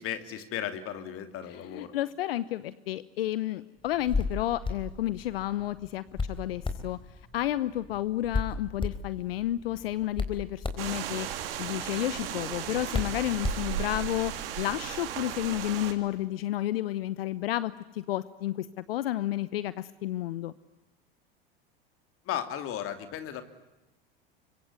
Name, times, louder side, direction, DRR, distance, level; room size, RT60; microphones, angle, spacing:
voice 1, 0.0-1.9 22.2-23.4, left 10 dB, 50° left, 9 dB, 2.8 m, -35 dB
voice 2, 1.7-7.0 7.3-20.5, left 14 dB, 75° left, 17 dB, 0.9 m, -31 dB
Hands, 3.9-14.1, left 4 dB, 15° left, 4.2 m, -36 dB
sound 1, 10.8-15.9, right 10 dB, 75° right, 3.2 m, -35 dB
25.5 x 24.5 x 9.6 m, 0.99 s
hypercardioid pair, 80°, 29 cm